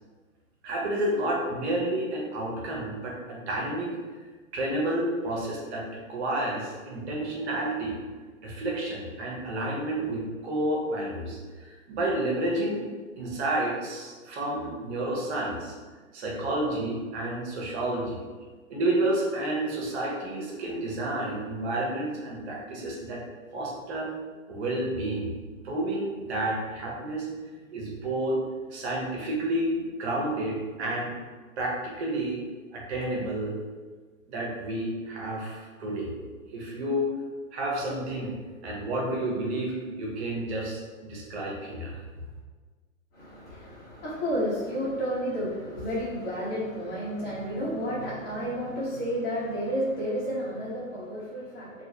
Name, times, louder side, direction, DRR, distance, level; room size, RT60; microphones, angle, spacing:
voice 1, 0.6-3.9 4.5-8.0 8.4-12.8 13.2-15.7 16.1-18.2 18.7-23.2 23.5-24.1 24.5-25.3 25.6-27.3 27.7-28.4 28.7-31.1 31.6-32.4 32.7-33.5 34.3-36.1 36.5-37.1 37.5-38.3 38.6-42.0, right 1 dB, 55° right, -2 dB, 1.0 m, -30 dB
voice 2, 43.1-51.8, equal, 25° left, -7 dB, 1.2 m, -31 dB
3.9 x 2.4 x 2.8 m, 1.4 s
hypercardioid pair, 125°, 41 cm